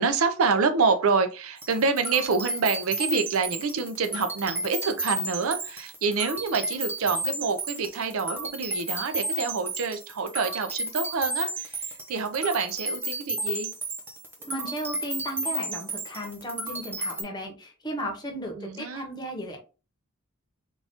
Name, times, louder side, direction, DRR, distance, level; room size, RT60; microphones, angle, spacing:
voice 1, 0.0-13.7 18.5-19.1, right 4 dB, 75° right, 9 dB, 0.5 m, -27 dB
sound 1, 1.6-17.2, right 2 dB, 10° right, 0.7 m, -33 dB
voice 2, 14.4-19.6, equal, 20° left, 2 dB, 0.8 m, -35 dB
3.9 x 2.4 x 3.5 m, 0.33 s
head